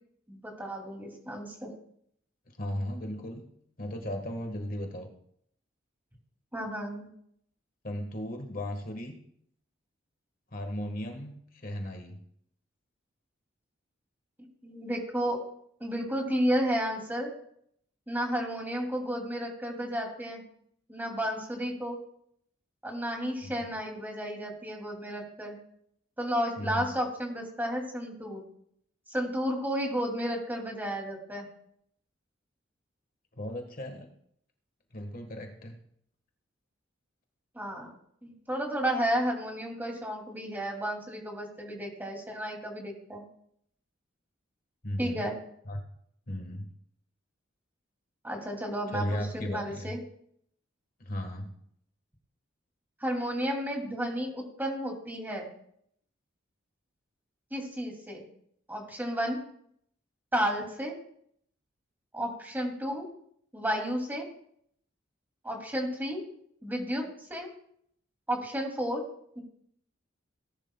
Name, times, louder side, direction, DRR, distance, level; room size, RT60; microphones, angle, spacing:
voice 1, 0.3-1.7 6.5-7.1 14.6-15.4 15.8-17.3 18.1-20.4 20.9-22.0 22.8-25.6 26.2-28.5 29.1-31.5 37.5-37.9 38.2-43.2 45.0-45.4 48.2-50.0 53.0-55.5 57.5-58.2 58.7-59.4 60.3-60.9 62.1-63.1 63.5-64.3 65.4-66.2 66.6-67.0 67.3-67.5 68.3-69.0 69.4-69.5, equal, 10° right, 1 dB, 2.4 m, -32 dB
voice 2, 2.6-3.5 3.8-5.1 7.8-9.2 10.5-12.2 23.4-23.5 26.6-26.9 33.4-34.1 34.9-35.8 44.8-45.3 45.7-45.8 46.3-46.7 48.9-49.9 51.0-51.5, equal, 45° left, 4 dB, 1.4 m, -36 dB
18.0 x 11.0 x 2.2 m, 0.68 s
head